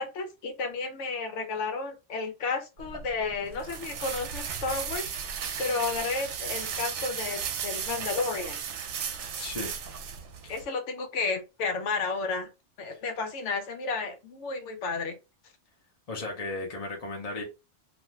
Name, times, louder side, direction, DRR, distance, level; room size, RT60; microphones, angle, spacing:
voice 1, 0.0-5.1 5.6-8.6 10.5-12.5 12.8-15.2, left 4 dB, 90° left, 1.0 m, -32 dB
sound 1, 2.8-10.6, right 7 dB, 75° right, 0.8 m, -35 dB
voice 2, 9.4-9.7 10.4-10.5 12.9-13.0 16.1-17.4, left 2 dB, 40° left, 0.7 m, -35 dB
2.5 x 2.3 x 3.1 m
omnidirectional pair, 1.2 m